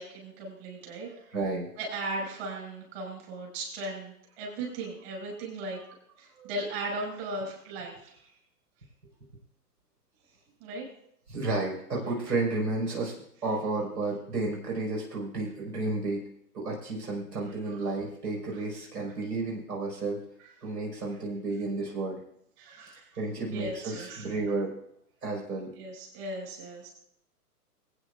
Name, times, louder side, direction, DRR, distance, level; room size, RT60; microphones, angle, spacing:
voice 1, 0.0-1.3 1.8-5.8 6.2-8.3 10.6-10.8 17.5-17.9 22.6-23.1 23.5-24.3 25.8-26.9, right 2 dB, 40° right, -2 dB, 6.1 m, -37 dB
voice 2, 1.3-1.7 6.4-6.5 11.3-13.1 13.4-16.2 16.5-20.2 20.6-22.2 23.1-24.7 25.2-25.7, right 3 dB, 75° right, -2 dB, 5.3 m, -32 dB
23.0 x 9.4 x 2.5 m, 0.71 s
hypercardioid pair, 125°, 47 cm